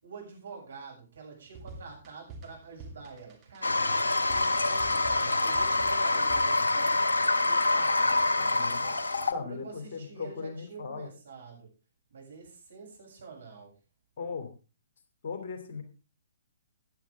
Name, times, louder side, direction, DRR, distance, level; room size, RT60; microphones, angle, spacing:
voice 1, 0.0-7.0 7.5-8.3 8.6-9.0 9.3-11.7 12.1-13.7, right 5 dB, 60° right, -1 dB, 7.4 m, -47 dB
sound 1, 1.5-6.7, right 3 dB, 25° right, 2.9 m, -47 dB
Toilet flush, 3.6-9.3, left 2 dB, 70° left, 1.3 m, -26 dB
voice 2, 8.5-8.9 9.3-11.1 14.2-14.5 15.2-15.8, left 5 dB, 45° left, 7 dB, 2.8 m, -38 dB
15.5 x 10.5 x 3.6 m, 0.32 s
figure-of-eight pair, 125°, 0 cm